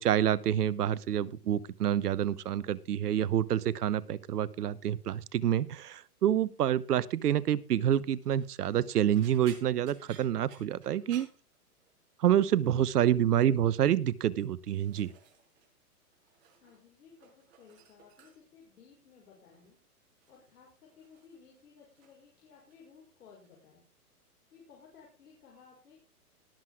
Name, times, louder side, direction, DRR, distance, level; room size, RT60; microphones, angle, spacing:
voice 1, 0.0-11.3 12.2-15.1, right 10 dB, 80° right, 19 dB, 1.0 m, -27 dB
sound 1, 8.1-8.5 9.1-12.1 12.4-12.8 13.1-13.6 14.3-15.7 16.0-16.8 17.1-18.6 19.5-19.8 20.2-22.3 22.5-23.1 23.4-23.6 24.9-25.0, right 7 dB, 50° right, 6.5 m, -58 dB
voice 2, 16.5-19.8 20.3-23.8 24.5-26.0, left 6 dB, 70° left, -2 dB, 5.6 m, -58 dB
19.5 x 7.7 x 3.7 m, 0.31 s
hypercardioid pair, 145°, 46 cm